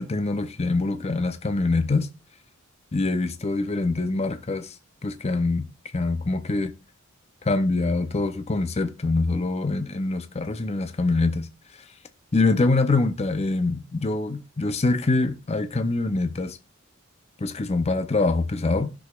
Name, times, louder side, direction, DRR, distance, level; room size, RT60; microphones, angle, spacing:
voice 1, 0.0-2.1 2.9-4.7 5.0-5.7 5.9-6.7 7.4-11.5 12.3-16.6 17.4-18.9, left 3 dB, 30° left, 0.6 m, -24 dB
17.0 x 6.3 x 2.3 m
head